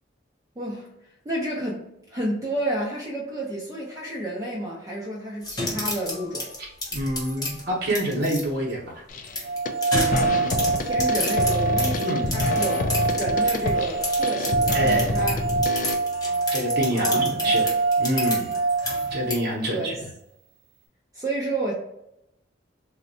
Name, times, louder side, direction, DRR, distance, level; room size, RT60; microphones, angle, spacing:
voice 1, 0.6-0.9 1.2-6.5 10.6-12.8 13.1-15.4 16.9-17.7 19.7-20.0 21.1-21.7, right 1 dB, 20° right, -4 dB, 0.5 m, -31 dB
sound 1, 5.4-8.4 9.2-13.7 14.0-19.3, left 2 dB, 20° left, 0.7 m, -31 dB
voice 2, 6.9-9.0 12.0-12.3 14.7-15.2 16.5-17.7 18.0-18.5 19.1-19.9, equal, 55° right, -3 dB, 0.9 m, -27 dB
sound 2, 9.1-9.4 9.7-15.9, left 2 dB, 45° left, 0.3 m, -28 dB
sound 3, 9.4-19.6, right 3 dB, 90° right, 0.6 m, -25 dB
3.8 x 2.1 x 2.6 m, 0.81 s
head